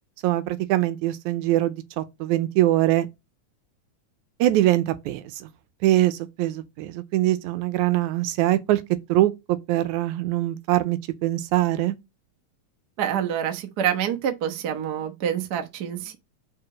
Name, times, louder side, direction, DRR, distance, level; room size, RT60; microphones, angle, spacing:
voice 1, 0.2-3.1 4.4-5.5 5.8-8.8 9.1-12.0, right 15 dB, 85° right, 2.0 m, -23 dB
voice 2, 13.0-16.2, right 9 dB, 55° right, 1.1 m, -27 dB
4.8 x 4.5 x 6.1 m
omnidirectional pair, 3.4 m